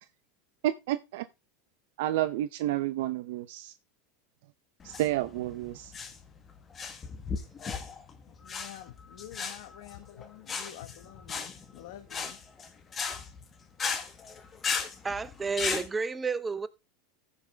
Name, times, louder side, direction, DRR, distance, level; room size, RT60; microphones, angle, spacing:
voice 1, 0.6-1.2 2.0-3.7 4.8-5.9, right 14 dB, 70° right, 0.6 m, -30 dB
sound 1, 4.8-15.9, left 5 dB, 25° left, 1.5 m, -36 dB
voice 2, 8.3-12.4, left 13 dB, 65° left, 1.2 m, -48 dB
voice 3, 15.0-16.7, right 4 dB, 15° right, 0.7 m, -31 dB
14.5 x 5.7 x 3.4 m
supercardioid pair, 135°, 0 cm